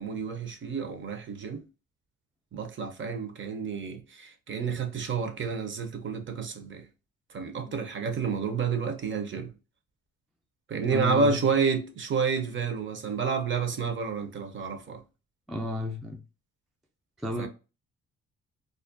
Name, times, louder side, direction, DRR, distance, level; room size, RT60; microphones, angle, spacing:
voice 1, 0.0-1.6 2.5-6.8 7.3-9.5 10.7-15.0 17.4-17.5, right 5 dB, 40° right, 0.6 m, -30 dB
voice 2, 10.9-11.5 15.5-16.2 17.2-17.5, left 1 dB, ahead, 0.3 m, -32 dB
2.4 x 2.1 x 2.5 m
cardioid pair, 90°, 30 cm